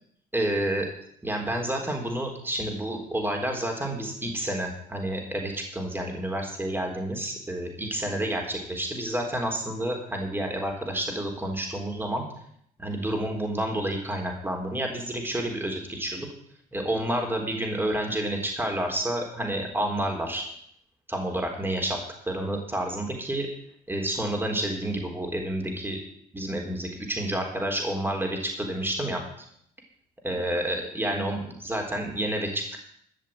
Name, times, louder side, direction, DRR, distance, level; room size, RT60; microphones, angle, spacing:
voice 1, 0.3-0.9 1.2-12.3 12.8-16.3 16.7-20.4 21.1-22.0 22.3-23.5 23.9-26.0 26.3-29.2 30.2-32.8, right 1 dB, 10° right, 1 dB, 4.0 m, -29 dB
13.0 x 6.7 x 8.8 m, 0.69 s
supercardioid pair, 70°, 18 cm